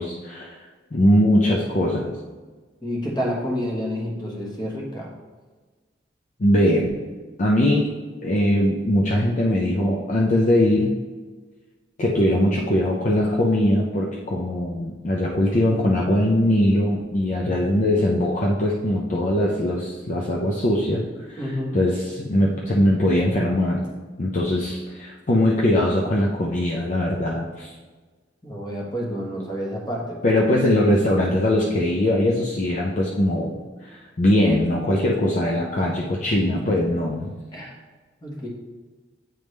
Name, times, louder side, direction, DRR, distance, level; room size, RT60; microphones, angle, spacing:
voice 1, 0.0-2.2 6.4-7.0 7.4-8.0 8.2-10.9 12.0-21.4 21.7-23.8 24.2-27.7 30.2-37.3, left 1 dB, 40° left, -2 dB, 0.5 m, -21 dB
voice 2, 2.8-5.1 21.4-21.8 28.4-30.2 36.3-36.7 37.5-37.8 38.2-38.5, equal, 25° left, -2 dB, 1.2 m, -29 dB
9.1 x 3.5 x 3.2 m, 1.4 s
head